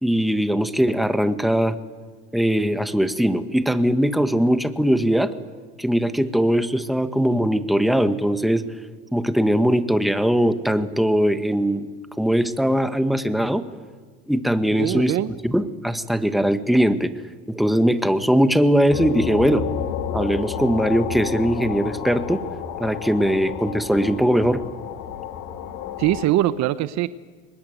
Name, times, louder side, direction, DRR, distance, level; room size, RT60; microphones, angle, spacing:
voice 1, 0.0-1.8 2.3-5.3 5.8-8.6 9.1-11.9 12.2-13.6 14.3-15.1 15.4-17.1 17.5-19.6 20.1-22.4 22.8-24.6, equal, ahead, 10 dB, 1.5 m, -20 dB
voice 2, 14.8-15.3 26.0-27.1, right 14 dB, 55° right, 15 dB, 0.9 m, -22 dB
sound 1, 18.9-26.3, left 8 dB, 70° left, 2.5 m, -30 dB
23.5 x 20.5 x 9.4 m, 1.4 s
supercardioid pair, 90°, 32 cm